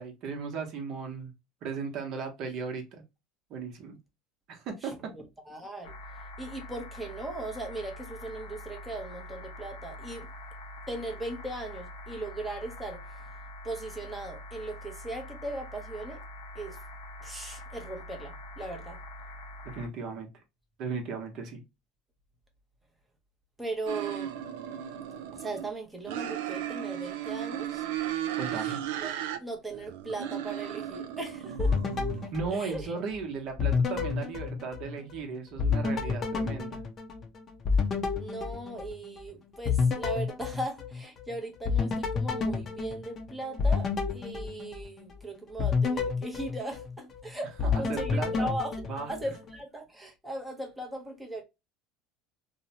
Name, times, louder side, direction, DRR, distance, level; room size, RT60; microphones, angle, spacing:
voice 1, 0.0-1.3 1.6-3.0 3.5-4.0 4.5-4.9 19.7-20.3 20.8-21.6 28.3-28.8 32.3-36.8 47.7-48.5 48.9-49.1, right 5 dB, 55° right, 0.8 m, -36 dB
voice 2, 4.8-5.9 6.4-10.3 10.9-13.2 13.6-16.2 16.5-16.8 17.2-19.0 23.6-24.3 25.3-27.9 28.5-29.1 29.4-31.7 32.1-32.9 38.2-51.4, right 2 dB, 5° right, 0.7 m, -38 dB
sound 1, 5.8-19.9, left 1 dB, 80° left, 0.7 m, -44 dB
sound 2, 23.9-25.7 26.1-29.4 29.7-32.3, right 11 dB, 85° right, 0.4 m, -35 dB
sound 3, 31.6-33.2 33.6-35.2 35.6-39.2 39.7-41.2 41.6-45.1 45.6-47.2 47.6-49.6, left 5 dB, 35° left, 0.6 m, -30 dB
2.7 x 2.1 x 2.7 m
supercardioid pair, 125°, 0 cm